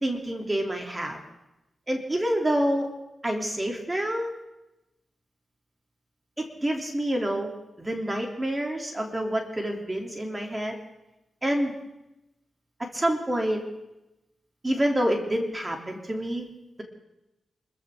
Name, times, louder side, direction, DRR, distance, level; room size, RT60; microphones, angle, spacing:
voice 1, 0.0-1.2 1.9-2.9 3.2-4.3 6.4-7.5 7.8-10.8 11.4-11.7 12.9-13.6 14.6-16.4, right 1 dB, 20° right, 1 dB, 2.9 m, -27 dB
26.0 x 14.5 x 3.7 m, 0.93 s
cardioid pair, 70°, 0 cm